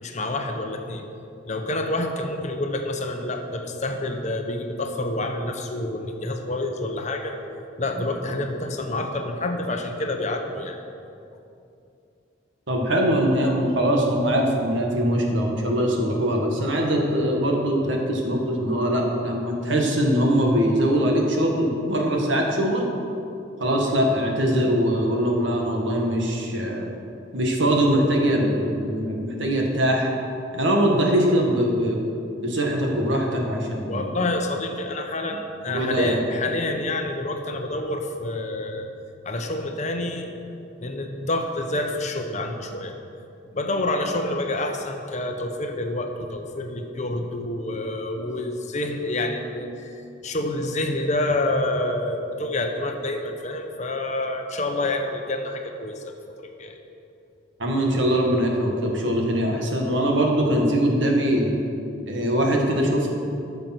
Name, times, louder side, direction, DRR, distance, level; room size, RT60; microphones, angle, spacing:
voice 1, 0.0-1.0 1.5-7.3 7.8-10.8 33.9-38.9 39.2-40.3 40.8-42.9 43.5-49.9 50.2-56.8, left 2 dB, 35° left, 4 dB, 0.9 m, -28 dB
voice 2, 12.7-22.8 23.6-26.9 27.3-30.1 30.5-32.0 32.4-34.1 35.7-36.2 57.6-61.5 62.1-63.1, equal, 70° right, 0 dB, 1.8 m, -22 dB
13.0 x 6.9 x 6.0 m, 2.7 s
head